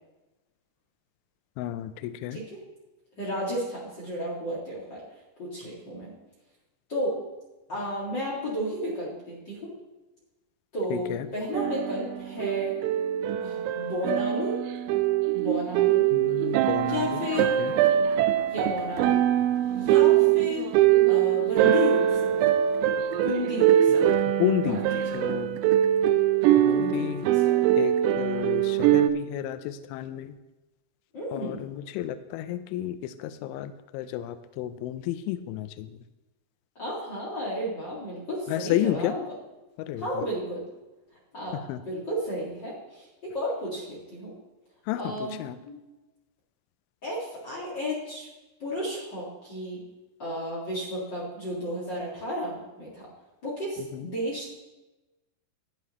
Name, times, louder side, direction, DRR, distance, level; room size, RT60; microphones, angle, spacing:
voice 1, 1.6-2.4 10.9-11.3 16.1-17.7 23.9-24.0 24.4-24.8 25.1-25.6 26.6-27.3 27.8-30.4 31.3-36.0 38.5-39.2 39.8-40.2 41.7-41.8 44.9-45.6 53.9-54.1, left 12 dB, 85° left, 11 dB, 2.7 m, -31 dB
voice 2, 3.2-5.0 5.4-6.1 6.9-7.2 7.7-9.7 10.7-12.8 13.4-14.6 15.3-16.0 16.8-17.5 18.5-19.2 19.7-20.7 21.1-22.4 23.2-24.1 24.6-24.8 25.2-25.4 26.7-27.5 31.1-31.7 36.7-39.2 40.0-40.6 41.3-41.6 41.8-44.3 45.0-45.4 45.6-45.8 47.0-48.3 48.6-49.8 50.2-53.1 53.4-54.5, equal, 65° left, -7 dB, 1.1 m, -33 dB
sound 1, 11.5-29.1, right 11 dB, 85° right, 3.2 m, -23 dB
13.0 x 9.7 x 3.1 m, 1.1 s
omnidirectional pair, 6.0 m